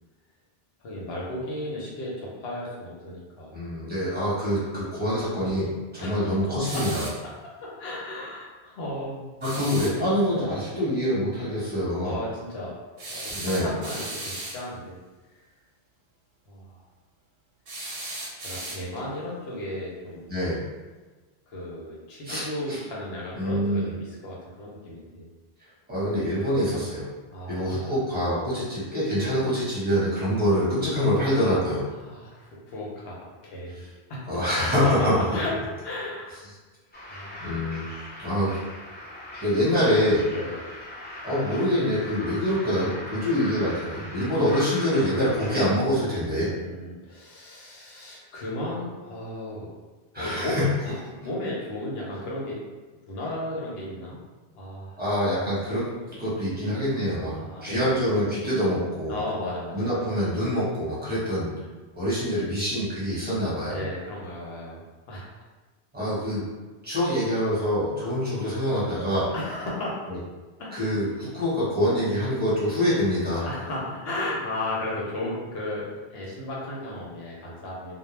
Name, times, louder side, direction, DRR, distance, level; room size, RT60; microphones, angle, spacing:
voice 1, 0.8-3.6 6.0-6.3 6.7-6.8 7.6-9.2 9.6-9.7 10.4-10.7 12.0-12.7 13.1-15.0 16.5-16.8 18.4-20.3 21.5-25.3 27.3-27.9 32.0-34.3 35.0-35.5 35.8-36.3 37.1-37.5 40.3-40.6 46.4-49.7 50.1-50.6 50.8-52.6 53.1-54.2 54.5-55.0 56.0-56.1 56.4-56.5 57.2-58.0 59.1-60.1 61.1-61.7 63.6-65.4 69.3-70.1 70.6-70.7 73.4-77.9, left 1 dB, 75° left, -4 dB, 0.9 m, -35 dB
voice 2, 3.5-7.1 9.4-12.2 13.3-13.7 20.3-20.6 22.2-22.8 23.3-23.9 25.9-27.1 27.5-31.8 34.3-35.3 37.4-37.8 38.2-38.6 39.4-40.2 41.2-46.5 50.1-50.6 55.0-57.3 57.6-59.1 59.7-61.5 61.9-63.8 65.9-66.4 66.8-69.3 70.1-70.2 70.7-73.5, equal, 10° right, -10 dB, 1.0 m, -25 dB
sound 1, 6.6-7.2 9.4-10.0 13.0-14.6 17.7-19.1, right 2 dB, 70° right, 0.7 m, -36 dB
sound 2, 36.9-45.7, left 1 dB, 15° left, 0.4 m, -40 dB
2.2 x 2.1 x 3.1 m, 1.3 s
omnidirectional pair, 1.1 m